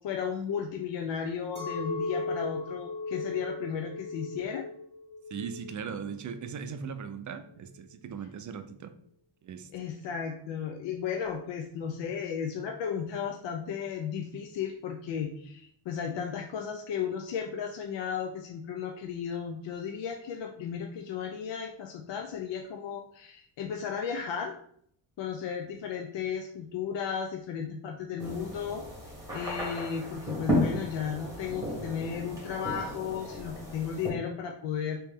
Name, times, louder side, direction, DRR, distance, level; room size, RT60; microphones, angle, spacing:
voice 1, 0.0-4.7 9.7-24.6 25.2-28.9 29.3-35.0, left 7 dB, 65° left, 3 dB, 0.5 m, -34 dB
Chink clink, 1.6-7.0, left 3 dB, 10° left, 1.1 m, -37 dB
voice 2, 5.3-8.9 9.4-10.0, right 6 dB, 40° right, 9 dB, 0.4 m, -39 dB
sound 1, 28.2-34.1, equal, 5° right, 1.5 m, -34 dB
3.2 x 2.9 x 3.4 m, 0.65 s
cardioid pair, 100°, 48 cm